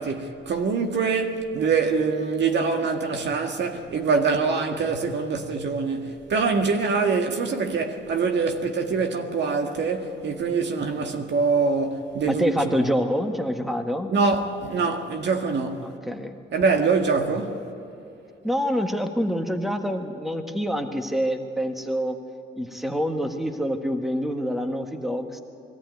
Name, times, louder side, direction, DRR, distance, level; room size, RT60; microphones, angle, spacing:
voice 1, 0.0-12.9 14.1-15.8 16.5-17.6, right 4 dB, 60° right, 1.9 m, -24 dB
voice 2, 12.2-14.1 15.8-16.4 18.4-22.1 22.6-25.4, equal, ahead, 1.5 m, -26 dB
22.0 x 14.0 x 9.3 m
cardioid pair, 90°, 20 cm